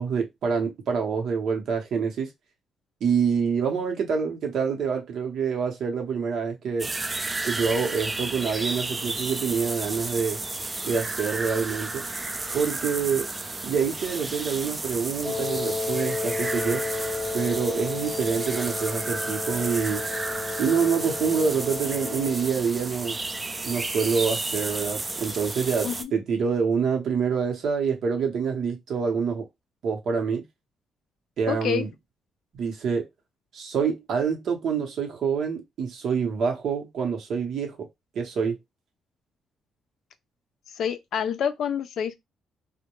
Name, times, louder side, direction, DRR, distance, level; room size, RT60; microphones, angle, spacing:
voice 1, 0.0-2.3 3.0-6.9 7.4-10.4 10.8-12.0 12.5-13.3 13.6-16.8 17.3-20.1 20.6-23.2 23.6-29.5 29.8-30.4 31.4-31.9 32.5-33.1 33.5-37.9 38.1-38.6, right 6 dB, 70° right, 0.8 m, -26 dB
sound 1, 6.8-26.0, right 2 dB, 25° right, 0.3 m, -32 dB
Wind instrument woodwind instrument, 15.2-22.5, left 3 dB, 15° left, 0.6 m, -32 dB
voice 2, 31.5-31.9 40.7-42.2, left 8 dB, 70° left, 0.4 m, -27 dB
2.2 x 2.1 x 2.9 m
cardioid pair, 90°, 0 cm